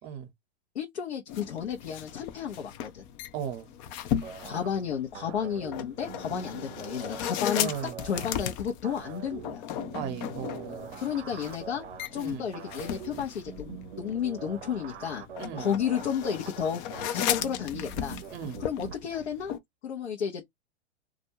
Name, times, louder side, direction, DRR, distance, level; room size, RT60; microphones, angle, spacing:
voice 1, 0.7-3.0 4.4-7.7 8.0-9.6 11.0-11.8 12.1-15.2 15.6-16.8 17.1-18.2 18.6-19.5 19.8-20.4, left 8 dB, 80° left, 0.8 m, -32 dB
sound 1, 1.3-19.6, left 10 dB, 45° left, 0.5 m, -36 dB
voice 2, 3.3-3.7 7.5-8.0 9.9-11.0 12.2-12.5 15.4-15.7 18.3-18.6, right 8 dB, 35° right, 0.7 m, -36 dB
sound 2, 4.2-18.9, right 9 dB, 80° right, 0.5 m, -44 dB
2.4 x 2.2 x 2.7 m
hypercardioid pair, 105°, 33 cm